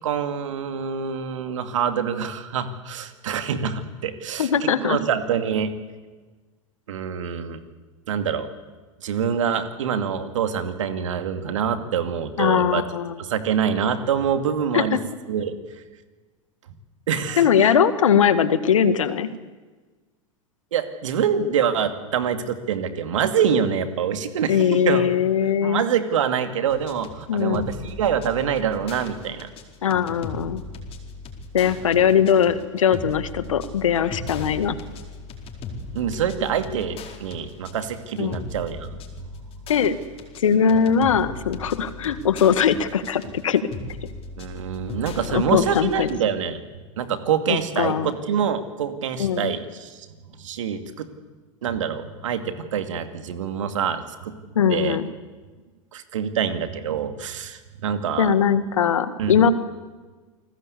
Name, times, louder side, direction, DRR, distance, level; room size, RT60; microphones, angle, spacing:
voice 1, 0.0-4.5 4.8-5.7 6.9-7.6 8.1-8.5 9.0-12.9 13.2-15.0 15.3-15.5 17.1-17.5 20.7-25.1 25.6-29.5 35.9-39.0 44.4-46.6 47.0-50.1 50.4-51.1 51.6-54.4 54.7-55.0 55.9-58.3 59.2-59.5, right 7 dB, 70° right, 8 dB, 2.4 m, -25 dB
voice 2, 4.4-5.0 12.4-13.1 14.7-15.0 17.4-19.3 24.5-25.8 27.3-27.7 29.8-30.6 31.5-34.8 38.2-38.4 39.7-39.9 40.4-43.6 45.3-46.1 47.5-48.1 49.2-49.5 54.5-55.1 58.2-59.5, left 8 dB, 75° left, 12 dB, 1.7 m, -20 dB
sound 1, 26.7-46.2, left 3 dB, 35° left, 4.6 m, -38 dB
28.5 x 20.0 x 8.4 m, 1.3 s
figure-of-eight pair, 90°, 17 cm